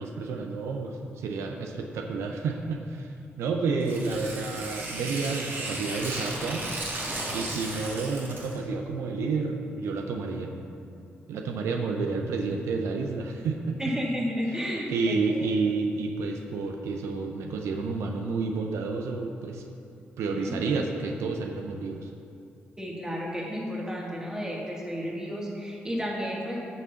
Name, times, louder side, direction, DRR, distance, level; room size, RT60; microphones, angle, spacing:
voice 1, 0.0-6.7 7.3-10.5 11.3-13.8 14.5-19.6 20.2-22.1, right 4 dB, 85° right, 3 dB, 0.6 m, -30 dB
Tearing, 3.8-8.6, right 2 dB, 50° right, 1.8 m, -35 dB
voice 2, 13.8-15.5 20.3-20.6 22.8-26.6, equal, 15° right, -2 dB, 2.0 m, -32 dB
9.4 x 3.7 x 6.9 m, 2.5 s
supercardioid pair, 60°, 5 cm